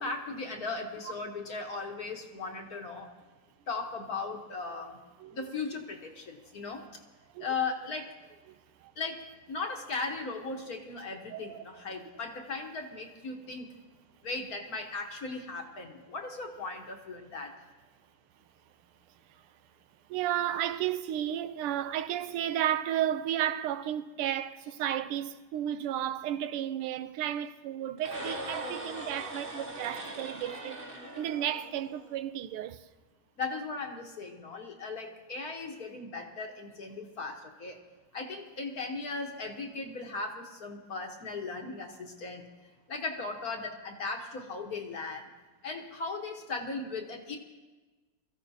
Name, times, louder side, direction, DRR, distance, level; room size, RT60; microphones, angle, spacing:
voice 1, 0.0-3.1 3.7-5.0 5.3-6.8 7.4-8.1 9.0-13.7 14.2-17.5 33.4-37.8 38.1-42.5 42.9-45.3 45.6-47.4, left 3 dB, 50° left, 1.4 m, -37 dB
voice 2, 11.3-11.6 20.1-30.8 31.1-32.8, right 11 dB, 85° right, 1.5 m, -33 dB
sound 1, 28.0-32.1, right 1 dB, 25° right, 1.7 m, -40 dB
23.5 x 14.5 x 2.8 m
omnidirectional pair, 2.4 m